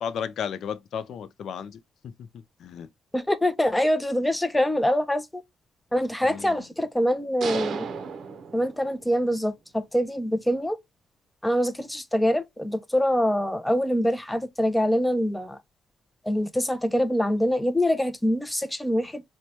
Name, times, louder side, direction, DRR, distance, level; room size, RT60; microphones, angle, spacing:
voice 1, 0.0-2.9 6.2-6.7, left 7 dB, 70° left, 0.4 m, -34 dB
voice 2, 3.1-5.4 5.9-7.9 8.5-10.8 11.4-15.6 16.2-19.2, equal, 10° left, 0.5 m, -24 dB
sound 1, 7.4-9.2, right 5 dB, 60° right, 0.6 m, -34 dB
4.4 x 2.2 x 2.6 m
cardioid pair, 90°, 0 cm